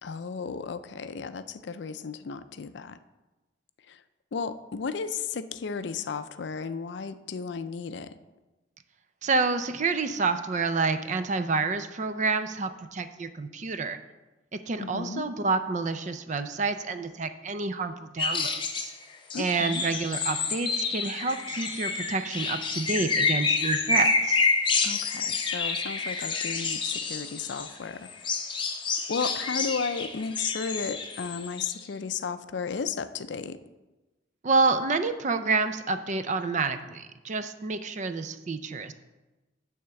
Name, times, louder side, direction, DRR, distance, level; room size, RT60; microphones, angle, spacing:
voice 1, 0.0-3.0 3.9-4.0 4.3-8.2 14.8-15.3 19.3-19.8 24.8-28.1 29.1-33.6, left 5 dB, 60° left, 12 dB, 0.4 m, -34 dB
voice 2, 9.2-14.0 14.5-18.9 19.4-24.5 34.4-38.9, right 4 dB, 40° right, 10 dB, 0.4 m, -28 dB
sound 1, 18.2-18.9 19.3-27.7 28.1-31.8, left 4 dB, 25° left, 0.7 m, -28 dB
9.5 x 3.6 x 6.9 m, 1.1 s
head